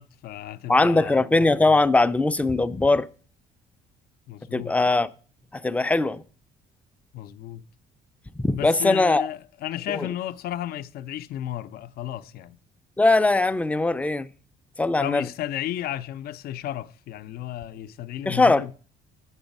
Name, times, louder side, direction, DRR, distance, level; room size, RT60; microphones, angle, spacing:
voice 1, 0.0-1.2 4.3-4.8 7.1-7.7 8.5-12.6 15.0-18.7, left 12 dB, 65° left, 0.5 m, -33 dB
voice 2, 0.7-3.1 4.5-5.1 5.5-6.2 8.3-9.2 9.9-10.1 13.0-14.3 14.8-15.3 18.3-18.7, left 2 dB, 10° left, 0.4 m, -20 dB
8.1 x 7.0 x 5.3 m
cardioid pair, 110°, 17 cm